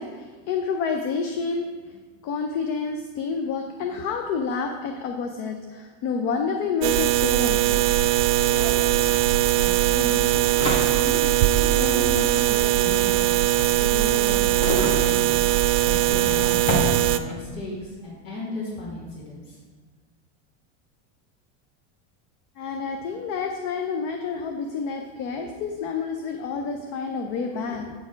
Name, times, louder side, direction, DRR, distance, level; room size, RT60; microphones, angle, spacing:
voice 1, 0.0-7.8 22.6-27.9, left 5 dB, 35° left, 4 dB, 0.5 m, -29 dB
sound 1, 6.8-6.9 7.1-17.6, equal, 15° left, 1.0 m, -33 dB
sound 2, 6.8-17.2, right 13 dB, 75° right, 0.5 m, -21 dB
voice 2, 9.5-10.1 11.0-11.2 11.7-13.2 13.8-15.4 15.8-19.6, left 1 dB, 90° left, -8 dB, 2.2 m, -34 dB
8.1 x 4.2 x 5.1 m, 1.4 s
supercardioid pair, 160°, 37 cm